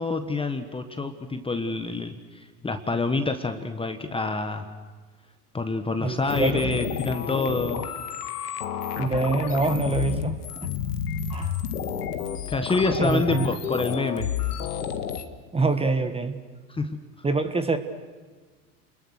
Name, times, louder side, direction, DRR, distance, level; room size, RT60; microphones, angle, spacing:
voice 1, 0.0-4.7 5.5-7.9 12.5-14.3 16.7-17.0, left 3 dB, 10° left, 7 dB, 1.4 m, -27 dB
voice 2, 6.0-6.7 9.0-10.4 11.3-11.5 13.0-13.5 15.5-16.4 17.2-17.8, right 3 dB, 15° right, 9 dB, 1.6 m, -25 dB
sound 1, 6.3-15.2, left 8 dB, 90° left, 1.9 m, -30 dB
29.0 x 21.5 x 6.6 m, 1.4 s
hypercardioid pair, 100°, 45 cm